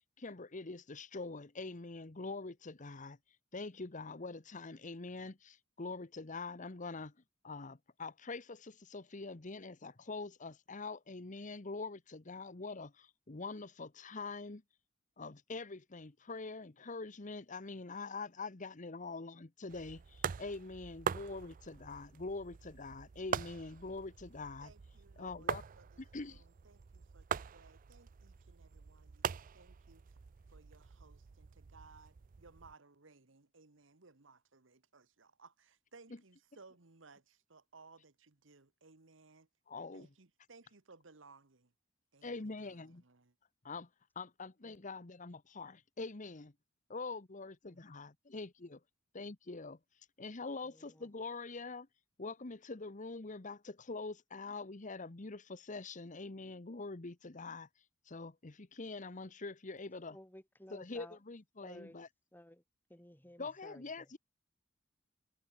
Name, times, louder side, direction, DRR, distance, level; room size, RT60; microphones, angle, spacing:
voice 1, 0.2-3.2 3.5-7.1 7.4-14.6 15.2-24.7 25.2-25.6 26.0-26.4 36.1-36.2 39.7-40.1 42.2-43.0 43.6-43.9 44.1-46.5 46.9-48.8 49.1-49.8 50.2-51.9 52.2-57.7 58.1-60.2 60.7-62.1 63.4-64.2, left 3 dB, 40° left, 1.1 m, -44 dB
sound 1, 19.7-32.7, right 7 dB, 45° right, 0.4 m, -43 dB
voice 2, 24.6-26.0 26.3-30.0 30.5-39.5 39.9-41.7 42.1-43.3, right 4 dB, 70° right, 1.5 m, -61 dB
voice 3, 50.6-51.1 60.1-61.2 61.6-62.0 62.3-62.6 62.9-64.2, left 1 dB, 10° left, 3.2 m, -56 dB
head